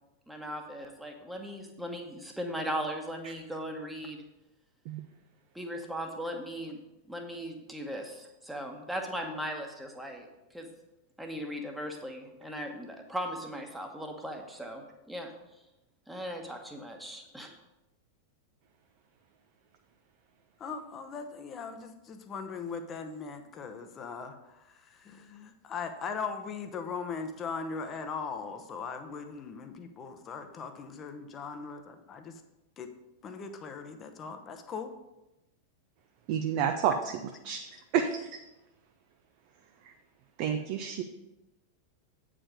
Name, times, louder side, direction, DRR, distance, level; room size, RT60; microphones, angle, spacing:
voice 1, 0.3-4.2 5.5-6.8 7.1-10.7 11.2-15.3 16.1-17.5, equal, 5° right, 3 dB, 1.2 m, -38 dB
voice 2, 20.6-32.4 32.8-32.9 33.2-34.9, left 5 dB, 25° left, 7 dB, 0.9 m, -39 dB
voice 3, 36.3-36.9 37.4-37.6 37.9-38.4 39.8-39.9 40.4-41.0, right 8 dB, 45° right, 6 dB, 0.5 m, -29 dB
8.5 x 5.0 x 5.1 m, 0.97 s
figure-of-eight pair, 90°, 0 cm